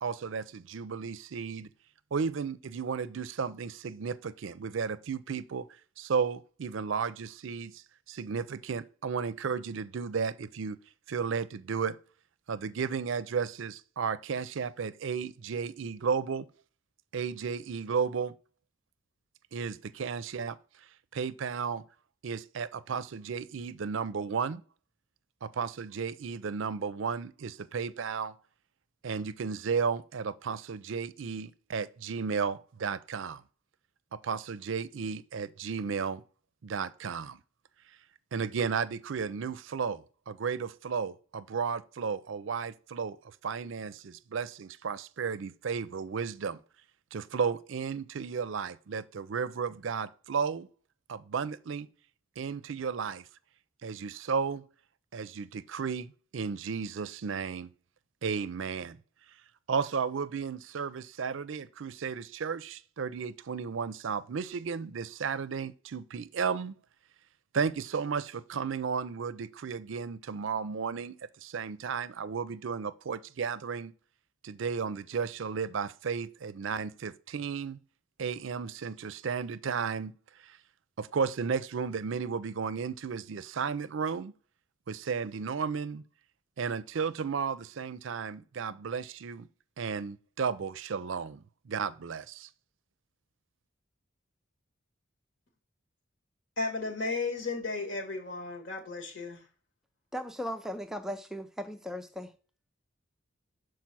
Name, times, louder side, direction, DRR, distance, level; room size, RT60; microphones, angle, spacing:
voice 1, 0.0-1.7 2.1-5.7 6.0-10.8 11.1-12.0 12.5-16.5 17.1-18.3 19.5-20.6 21.1-21.8 22.2-24.6 25.4-28.4 29.0-33.4 34.1-36.2 36.6-37.4 38.3-46.6 47.1-50.7 51.1-51.9 52.4-53.3 53.8-54.6 55.1-57.7 58.2-59.0 59.7-66.8 67.5-73.9 74.4-77.8 78.2-80.1 80.4-80.6 81.0-84.3 84.9-86.0 86.6-89.5 89.8-92.5, right 6 dB, 70° right, 0.4 m, -34 dB
voice 2, 96.6-99.4, left 3 dB, 65° left, 2.0 m, -34 dB
voice 3, 100.1-102.3, equal, ahead, 0.3 m, -37 dB
5.9 x 4.7 x 6.1 m
head